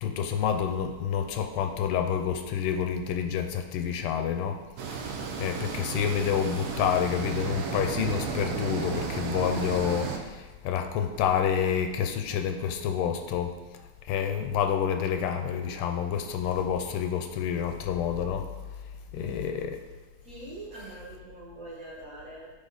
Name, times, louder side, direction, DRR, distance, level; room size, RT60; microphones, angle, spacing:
voice 1, 0.0-4.6 4.9-5.0 5.4-13.6 14.1-18.5 19.1-19.8, left 8 dB, 80° left, 6 dB, 1.5 m, -28 dB
sound 1, 4.8-10.2, right 5 dB, 75° right, 1.5 m, -33 dB
voice 2, 19.1-19.6 20.2-22.5, right 2 dB, 40° right, -7 dB, 1.9 m, -43 dB
9.1 x 3.6 x 4.0 m, 1.2 s
omnidirectional pair, 2.4 m